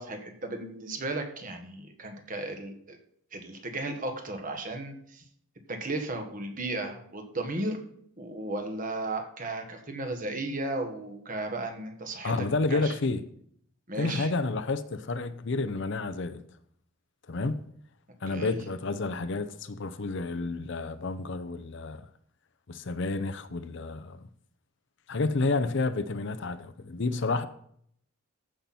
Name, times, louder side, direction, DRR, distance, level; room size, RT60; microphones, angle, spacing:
voice 1, 0.0-3.0 3.3-5.2 5.7-7.8 8.2-12.9 13.9-14.3 18.3-18.6, right 2 dB, 40° right, 1.5 m, -35 dB
voice 2, 12.2-13.2 14.0-16.4 17.3-17.6 18.2-22.1 22.7-24.3 25.1-27.5, left 3 dB, 60° left, 0.6 m, -30 dB
14.5 x 5.8 x 4.3 m
head